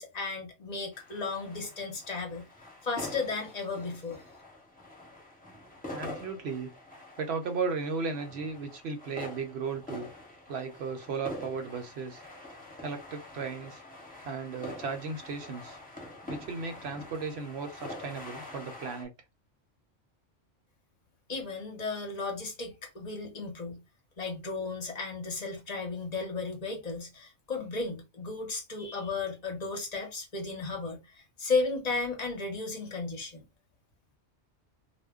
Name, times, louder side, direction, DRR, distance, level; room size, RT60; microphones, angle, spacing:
voice 1, 0.0-2.5 2.8-4.2 21.3-23.8 24.2-33.5, left 3 dB, 40° left, 0.8 m, -34 dB
sound 1, 0.9-19.0, left 1 dB, 10° left, 0.9 m, -45 dB
voice 2, 5.9-6.7 7.2-10.1 10.5-12.2 12.8-13.8 14.2-15.8 16.3-19.1, right 4 dB, 65° right, 0.8 m, -35 dB
2.2 x 2.1 x 3.5 m
omnidirectional pair, 1.3 m